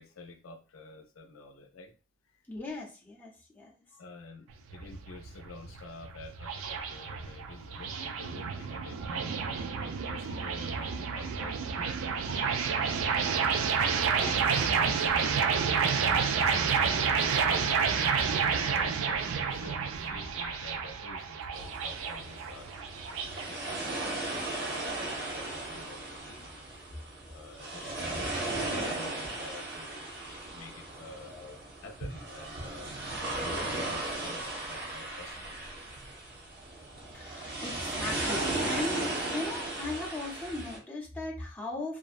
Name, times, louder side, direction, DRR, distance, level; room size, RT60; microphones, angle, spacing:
voice 1, 0.0-1.9 3.9-12.4 16.8-17.5 18.1-22.7 23.1-26.5 27.3-30.1 30.5-31.3 31.8-35.6, left 3 dB, 85° left, 4 dB, 0.4 m, -49 dB
voice 2, 2.5-3.7 14.1-15.1 31.3-31.6 37.1-42.0, left 2 dB, 10° left, -3 dB, 0.5 m, -39 dB
sound 1, 4.5-23.5, right 6 dB, 80° right, 0.3 m, -30 dB
sound 2, 21.5-40.8, right 2 dB, 55° right, 0.7 m, -36 dB
2.5 x 2.0 x 2.4 m, 0.35 s
head